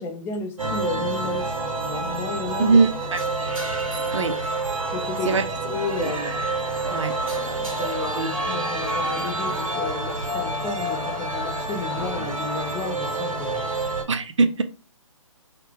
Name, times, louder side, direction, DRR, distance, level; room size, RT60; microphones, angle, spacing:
voice 1, 0.0-1.5 1.9-2.8 4.9-6.4 7.3-13.9, left 4 dB, 10° left, 0.5 m, -32 dB
sound 1, 0.6-14.0, right 2 dB, 85° right, 1.5 m, -28 dB
voice 2, 2.6-3.2 4.1-4.4 5.2-5.4 6.0-6.1 6.9-7.1 8.1-8.3 14.1-14.6, right 4 dB, 60° right, 0.6 m, -21 dB
4.0 x 2.0 x 3.4 m
figure-of-eight pair, 135°, 17 cm